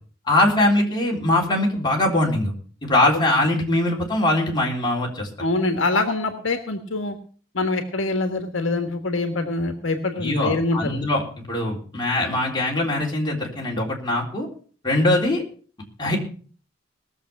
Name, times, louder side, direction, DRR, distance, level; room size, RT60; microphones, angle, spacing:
voice 1, 0.3-2.5 2.8-5.3 10.2-14.5 14.8-15.4 16.0-16.2, left 1 dB, 25° left, -1 dB, 3.7 m, -22 dB
voice 2, 5.4-7.2 7.5-11.0, left 2 dB, 75° left, 6 dB, 1.6 m, -24 dB
19.5 x 7.1 x 5.9 m, 0.43 s
head